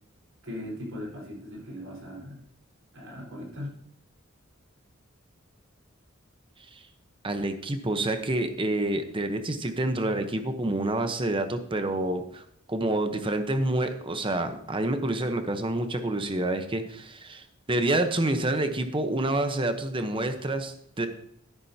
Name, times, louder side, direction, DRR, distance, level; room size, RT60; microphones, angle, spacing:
voice 1, 0.4-2.4 2.9-3.8, left 1 dB, 85° right, -2 dB, 4.8 m, -39 dB
voice 2, 7.2-12.4 12.7-21.1, right 1 dB, 25° right, 8 dB, 0.9 m, -28 dB
12.5 x 10.5 x 2.8 m, 0.69 s
head